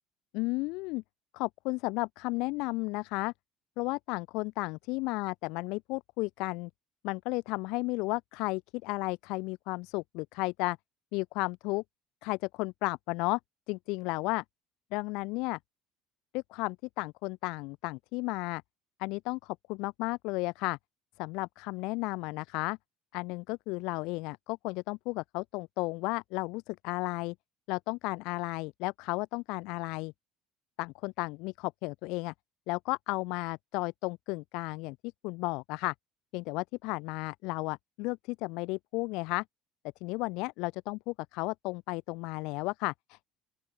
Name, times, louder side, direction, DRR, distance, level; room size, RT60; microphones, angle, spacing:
voice 1, 0.3-1.0 1.3-3.3 3.8-6.7 7.0-10.8 11.1-11.8 12.2-13.4 13.7-14.4 14.9-15.6 16.3-18.6 19.0-20.8 21.2-22.8 23.1-27.3 27.7-30.1 30.8-32.3 32.7-35.0 35.2-35.9 36.3-39.4 40.0-43.3, left 25 dB, 80° left, 1.1 m, -33 dB
open air
cardioid pair, 115°, 0 cm